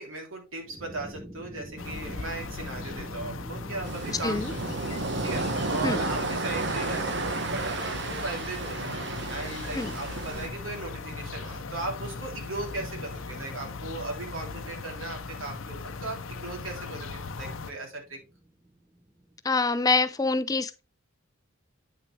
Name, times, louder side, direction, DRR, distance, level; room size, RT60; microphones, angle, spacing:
voice 1, 0.0-4.8 5.2-8.9 9.3-18.2, right 2 dB, 75° right, 3.0 m, -37 dB
sound 1, 0.6-19.4, right 1 dB, 20° right, 1.1 m, -47 dB
sound 2, 1.8-17.7, left 4 dB, 70° left, 0.6 m, -39 dB
sound 3, 3.8-10.5, right 3 dB, 55° right, 1.1 m, -32 dB
voice 2, 4.1-4.5 5.8-6.0 9.7-9.9 19.4-20.8, left 3 dB, 15° left, 0.4 m, -26 dB
8.9 x 5.8 x 3.2 m
head